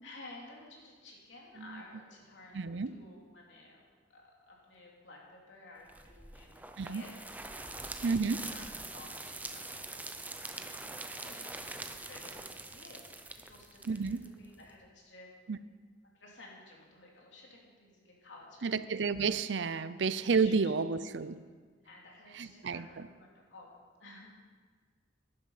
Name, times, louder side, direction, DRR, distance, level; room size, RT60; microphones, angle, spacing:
voice 1, 0.0-3.8 4.1-8.0 8.5-13.2 13.5-15.3 16.1-18.7 19.8-20.0 20.4-20.7 21.8-24.3, left 2 dB, 75° left, -2 dB, 3.1 m, -54 dB
voice 2, 2.5-2.9 6.8-7.0 8.0-8.4 13.9-14.2 15.5-15.6 18.6-21.4 22.4-22.9, right 5 dB, 70° right, 14 dB, 0.5 m, -30 dB
sound 1, 5.9-14.7, right 2 dB, 10° right, 0.6 m, -44 dB
12.0 x 11.0 x 5.7 m, 1.5 s
head